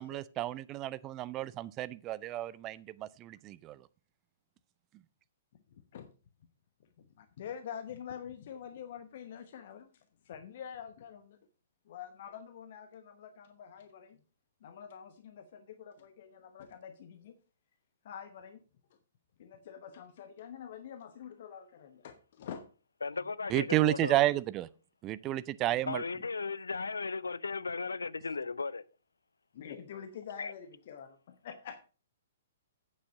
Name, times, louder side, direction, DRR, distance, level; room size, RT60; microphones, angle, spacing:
voice 1, 0.0-3.8 23.5-24.7 25.0-26.0, right 15 dB, 25° right, 0.4 m, -31 dB
voice 2, 5.7-6.1 7.0-11.4 11.9-14.2 14.6-17.4 18.0-18.6 19.4-22.7 25.7-25.8 29.5-31.8, left 8 dB, 45° left, 0.9 m, -46 dB
voice 3, 23.0-24.2 25.9-28.8 30.4-30.5, left 4 dB, 70° left, 0.5 m, -36 dB
8.7 x 7.1 x 5.1 m
figure-of-eight pair, 115°, 0 cm